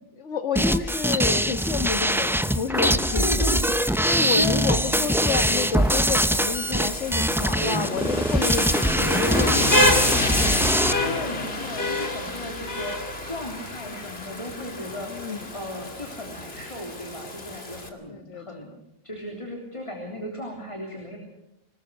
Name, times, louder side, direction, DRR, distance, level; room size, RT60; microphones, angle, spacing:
voice 1, 0.2-3.5 3.9-10.3 15.1-15.5 18.1-18.7, left 6 dB, 75° left, 8 dB, 1.9 m, -30 dB
sound 1, 0.6-10.9, equal, 5° right, 0.5 m, -23 dB
Rain, 2.7-17.9, left 2 dB, 55° left, 2.8 m, -29 dB
voice 2, 3.2-3.7 4.4-5.3 7.6-7.9 8.4-8.6 10.7-18.8 19.0-21.2, left 1 dB, 25° left, 1 dB, 3.5 m, -35 dB
25.0 x 20.0 x 6.3 m, 0.88 s
omnidirectional pair, 1.2 m